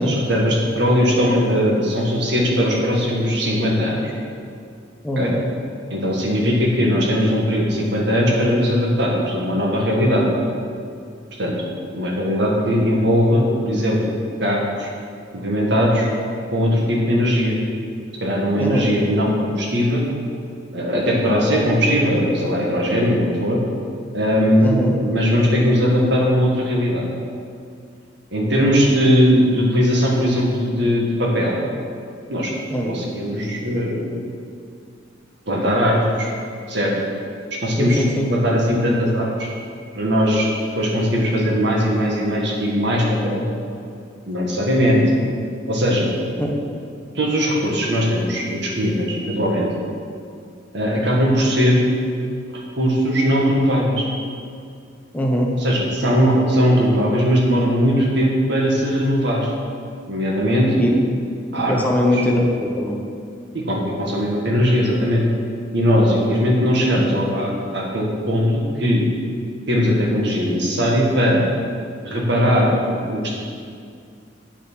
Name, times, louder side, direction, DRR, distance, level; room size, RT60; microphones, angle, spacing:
voice 1, 0.0-4.0 5.2-5.3 5.9-10.3 11.4-11.6 11.9-14.9 15.3-16.1 16.5-17.6 18.2-20.0 20.7-23.6 24.1-27.1 28.3-31.6 32.3-32.5 32.9-34.0 35.5-36.3 36.7-36.9 37.6-38.0 38.3-39.5 39.9-40.5 40.8-43.4 44.3-45.0 45.7-46.1 47.1-49.7 50.7-51.9 52.8-54.1 55.6-59.5 60.1-60.9 61.5-61.8 62.1-62.2 63.5-65.3 65.7-69.0 69.7-71.4 72.0-72.7 73.1-73.3, equal, 65° right, -2 dB, 2.0 m, -19 dB
voice 2, 5.0-5.4 18.6-18.9 24.6-24.9 32.7-32.9 37.8-38.3 46.4-46.5 55.1-55.5 60.8-61.0 61.6-63.0 66.9-67.1, left 1 dB, 10° left, -2 dB, 1.2 m, -21 dB
8.5 x 6.3 x 6.3 m, 2.3 s
head